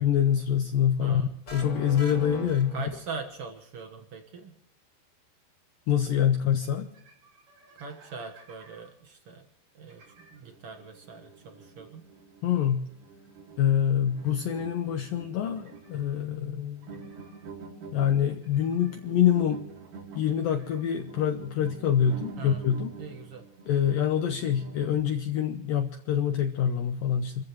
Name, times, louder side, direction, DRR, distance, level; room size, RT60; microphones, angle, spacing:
voice 1, 0.0-2.8 5.9-6.9 12.4-12.9 13.6-17.0 17.9-19.6 20.2-22.9 23.7-27.4, left 9 dB, 75° left, 5 dB, 2.1 m, -26 dB
voice 2, 1.0-1.3 2.7-4.5 7.8-9.5 9.7-10.0 10.3-12.0 22.4-22.6 23.0-23.4, right 5 dB, 80° right, 4 dB, 1.3 m, -41 dB
sound 1, 1.5-3.5, left 1 dB, 30° left, 2.3 m, -39 dB
sound 2, 6.1-6.3 6.6-6.7 6.9-8.9 9.9-25.0, right 5 dB, 50° right, 4.4 m, -47 dB
28.5 x 15.0 x 3.1 m, 0.71 s
omnidirectional pair, 5.1 m